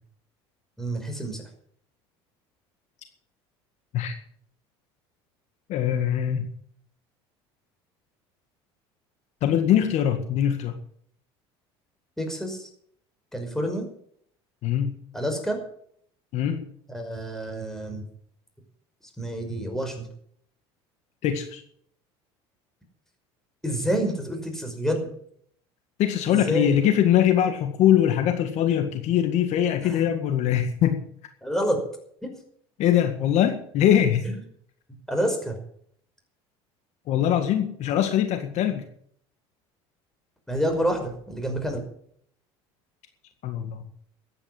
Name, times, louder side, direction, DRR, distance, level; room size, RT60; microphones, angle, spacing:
voice 1, 0.8-1.5 12.2-12.7 13.3-13.9 15.1-15.6 16.9-18.0 19.2-20.1 23.6-25.1 26.3-26.8 29.8-30.0 31.4-31.8 32.2-32.3 34.2-34.3 35.1-35.6 40.5-41.8, equal, 5° left, 4 dB, 5.6 m, -28 dB
voice 2, 5.7-6.5 9.4-10.7 14.6-14.9 16.3-16.6 21.2-21.6 26.0-31.0 32.8-34.3 37.1-38.8 43.4-43.8, left 10 dB, 60° left, 7 dB, 1.9 m, -22 dB
14.0 x 9.9 x 7.8 m, 0.63 s
supercardioid pair, 90°, 13 cm